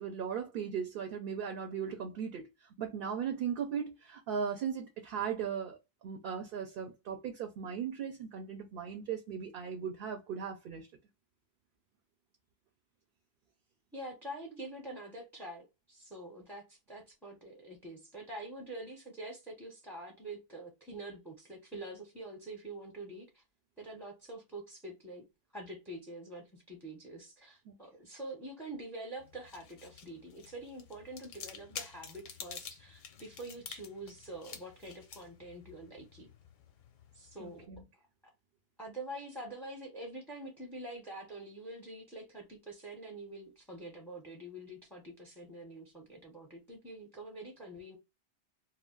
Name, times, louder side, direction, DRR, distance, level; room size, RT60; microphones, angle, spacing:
voice 1, 0.0-2.5 2.8-5.8 6.0-10.9 27.7-27.8 37.4-37.8, right 7 dB, 65° right, 0.7 m, -37 dB
voice 2, 13.9-23.4 23.8-25.2 25.5-36.3 37.1-37.7 38.8-48.0, right 1 dB, 5° left, 0.5 m, -46 dB
sound 1, 29.2-37.7, left 7 dB, 60° left, 0.6 m, -50 dB
2.3 x 2.1 x 3.6 m
omnidirectional pair, 1.1 m